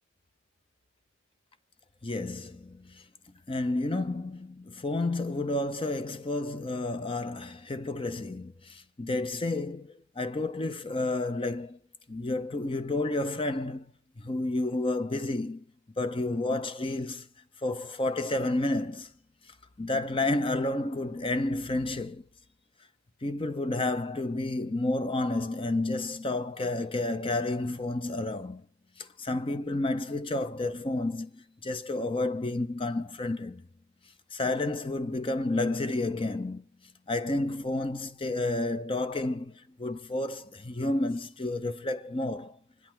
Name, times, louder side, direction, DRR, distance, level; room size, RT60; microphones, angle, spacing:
voice 1, 2.0-3.0 3.5-11.8 12.1-13.9 14.2-15.6 16.0-17.3 17.6-19.1 19.8-22.2 23.2-28.6 29.0-33.6 34.3-36.6 37.1-42.6, left 2 dB, 25° left, 0.7 m, -30 dB
25.5 x 11.0 x 4.5 m
head